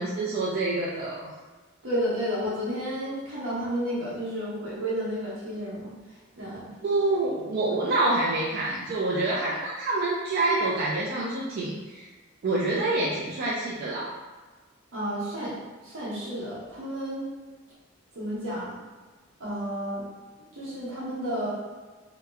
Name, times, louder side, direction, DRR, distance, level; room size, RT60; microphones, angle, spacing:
voice 1, 0.0-1.3 6.8-12.1 12.4-14.1, right 2 dB, 50° right, -5 dB, 0.3 m, -27 dB
voice 2, 1.8-5.9 6.4-6.7 14.9-15.6 15.8-17.3 18.1-18.8 19.4-20.0 20.5-21.5, equal, 80° right, -8 dB, 0.9 m, -31 dB
2.8 x 2.0 x 2.2 m, 1.3 s
head